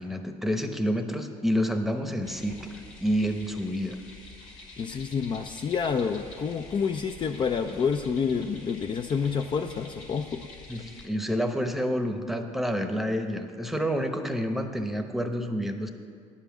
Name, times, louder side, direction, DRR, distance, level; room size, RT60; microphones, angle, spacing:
voice 1, 0.0-4.0 10.7-15.9, equal, ahead, 6 dB, 0.9 m, -29 dB
sound 1, 2.2-11.1, left 3 dB, 75° left, 2.0 m, -47 dB
voice 2, 4.8-10.5, left 6 dB, 35° left, 5 dB, 0.5 m, -28 dB
9.7 x 5.7 x 7.2 m, 2.3 s
supercardioid pair, 80°, 14 cm